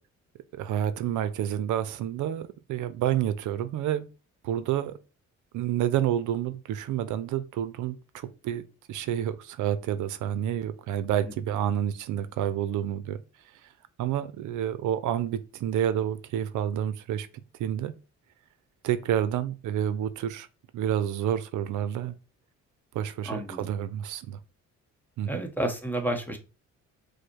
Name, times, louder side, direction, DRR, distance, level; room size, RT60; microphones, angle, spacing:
voice 1, 0.5-4.1 4.4-5.0 5.5-8.6 8.9-13.2 13.6-13.7 14.0-17.3 17.6-17.9 18.8-20.5 20.7-22.1 22.9-24.4 25.2-25.4, right 10 dB, 80° right, 0.5 m, -29 dB
voice 2, 23.3-23.7 25.3-26.4, right 1 dB, 5° left, 0.9 m, -30 dB
4.9 x 2.1 x 4.5 m
cardioid pair, 90°, 30 cm